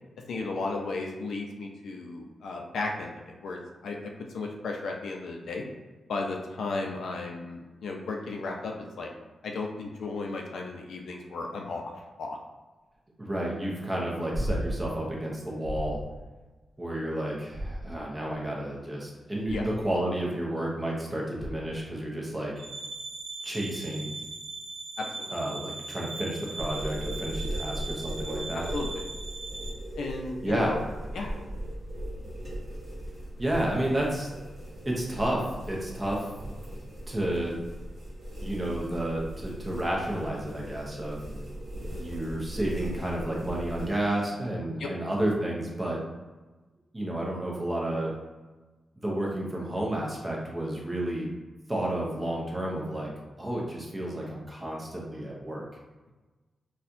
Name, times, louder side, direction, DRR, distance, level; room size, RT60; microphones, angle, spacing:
voice 1, 0.3-4.0 4.3-5.6 6.1-9.1 9.4-11.8 12.2-12.4 19.4-19.7 25.0-25.3 28.7-29.0 30.0-30.8 31.1-31.4 44.8-44.9, left 3 dB, 75° left, 1 dB, 0.5 m, -34 dB
voice 2, 13.2-16.0 16.8-22.5 23.4-24.1 25.3-28.7 30.4-30.8 33.4-34.3 34.8-36.3 37.1-37.6 38.4-41.2 41.9-46.0 46.9-48.1 49.0-51.3 51.7-53.1 53.4-55.6, right 1 dB, 15° right, -3 dB, 0.6 m, -31 dB
sound 1, 14.3-15.0 15.6-16.2 17.5-18.2 19.4-19.9 21.4-21.8 24.2-24.3, equal, 25° left, 0.8 m, -34 dB
sound 2, 22.6-29.7, right 3 dB, 75° right, 0.7 m, -39 dB
sound 3, 26.6-43.9, right 1 dB, 30° right, 1.2 m, -38 dB
4.2 x 2.2 x 2.6 m, 1.2 s
wide cardioid pair, 175°, 0 cm